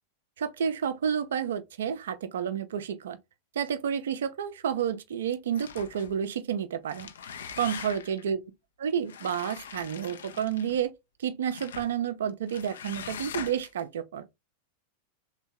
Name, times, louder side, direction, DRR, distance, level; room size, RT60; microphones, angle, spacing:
voice 1, 0.4-3.2 3.5-7.1 7.6-8.4 8.8-10.9 11.2-14.2, right 8 dB, 60° right, 0.5 m, -30 dB
sound 1, 5.5-6.2 6.8-8.2 9.1-10.8 11.5-11.9 12.5-13.8, left 7 dB, 65° left, 0.4 m, -42 dB
3.4 x 2.2 x 3.0 m
figure-of-eight pair, 90°, 0 cm